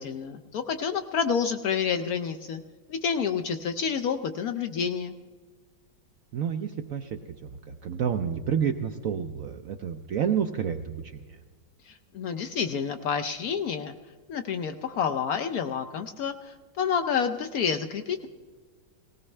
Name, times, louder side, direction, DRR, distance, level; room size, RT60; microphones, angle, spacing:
voice 1, 0.0-2.6 2.9-5.2 11.9-13.9 14.3-18.3, left 6 dB, 70° left, 8 dB, 0.9 m, -29 dB
voice 2, 6.3-11.4, right 8 dB, 70° right, 7 dB, 0.8 m, -30 dB
18.5 x 17.5 x 3.2 m, 1.4 s
omnidirectional pair, 2.0 m